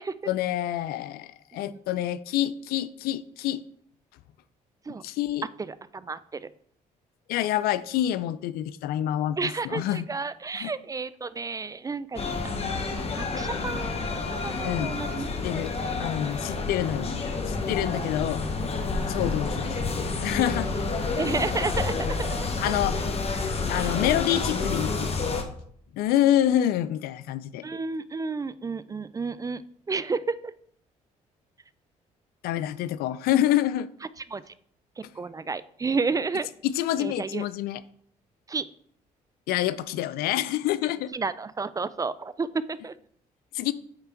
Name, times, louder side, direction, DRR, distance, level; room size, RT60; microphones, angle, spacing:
voice 1, 0.3-3.6 5.0-5.5 7.3-10.0 10.5-10.7 14.6-14.9 15.4-15.7 16.0-17.1 17.5-18.4 19.1-20.7 22.6-23.0 23.7-25.4 25.9-27.6 32.4-33.9 36.6-37.8 39.5-41.1 43.5-43.7, left 12 dB, 80° left, 16 dB, 0.4 m, -27 dB
voice 2, 5.6-6.5 9.4-15.3 15.8-16.1 16.5-16.8 17.9-18.0 20.7-20.8 21.2-22.8 23.8-24.0 27.6-29.6 29.9-30.5 34.3-34.5 35.0-36.5 37.0-37.4 38.5-38.6 41.1-42.9, right 4 dB, 20° right, 16 dB, 0.4 m, -32 dB
sound 1, 12.2-25.4, left 4 dB, 40° left, 1.1 m, -29 dB
8.9 x 3.4 x 4.4 m, 0.63 s
supercardioid pair, 65°, 16 cm